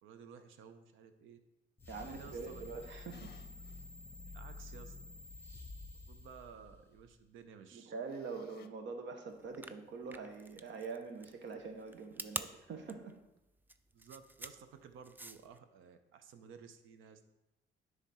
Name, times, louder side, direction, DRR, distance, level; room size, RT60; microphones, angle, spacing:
voice 1, 0.0-1.4 2.0-2.6 4.3-5.0 6.1-7.9 13.9-17.2, right 6 dB, 85° right, 9 dB, 0.7 m, -55 dB
sound 1, 1.8-7.2, left 2 dB, 10° left, 1.0 m, -50 dB
voice 2, 1.9-3.3 7.7-13.2, right 4 dB, 65° right, 5 dB, 1.1 m, -44 dB
sound 2, 3.1-3.8 4.3-4.4 8.1-8.7, left 8 dB, 50° left, 0.6 m, -60 dB
sound 3, 9.4-15.6, right 2 dB, 10° right, 0.3 m, -46 dB
9.9 x 3.6 x 4.2 m, 0.96 s
cardioid pair, 90°, 20 cm